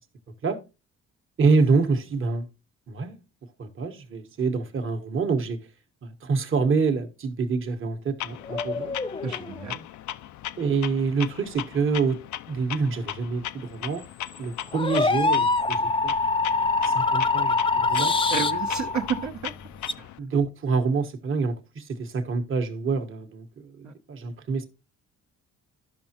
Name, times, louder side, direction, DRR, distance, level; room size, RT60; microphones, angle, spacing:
voice 1, 1.4-2.5 2.9-3.2 3.6-5.6 6.0-8.9 10.6-12.2 12.5-14.1 14.4-16.1 16.8-18.3 20.2-24.6, right 4 dB, 45° right, 1.3 m, -26 dB
Clock, 8.2-20.2, left 13 dB, 70° left, 0.5 m, -38 dB
sound 1, 8.5-9.7 14.0-19.9, left 3 dB, 15° left, 0.5 m, -25 dB
voice 2, 9.2-9.8 18.3-19.5 20.0-20.1 23.8-23.9, right 6 dB, 65° right, 1.2 m, -31 dB
13.0 x 5.6 x 2.9 m
cardioid pair, 90°, 30 cm